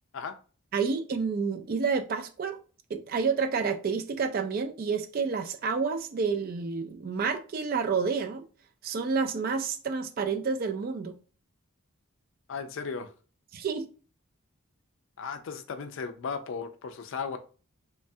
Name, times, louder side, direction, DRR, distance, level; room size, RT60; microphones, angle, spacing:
voice 1, 0.7-2.6 2.9-8.4 8.8-11.1 13.5-13.9, right 5 dB, 40° right, 0.3 m, -29 dB
voice 2, 12.5-13.1 15.2-17.4, left 5 dB, 60° left, 0.4 m, -36 dB
3.1 x 2.2 x 2.6 m
head